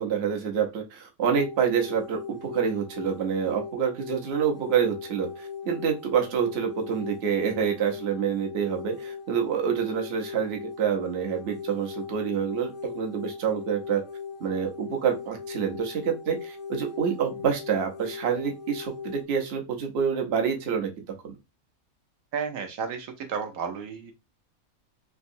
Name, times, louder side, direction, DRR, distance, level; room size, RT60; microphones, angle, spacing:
voice 1, 0.0-14.0 14.4-20.9 21.2-21.3, right 7 dB, 55° right, 3 dB, 0.9 m, -27 dB
sound 1, 1.2-19.2, left 6 dB, 50° left, 0.7 m, -39 dB
voice 2, 22.3-24.1, right 6 dB, 75° right, 5 dB, 1.1 m, -32 dB
3.5 x 2.9 x 2.6 m, 0.24 s
omnidirectional pair, 1.5 m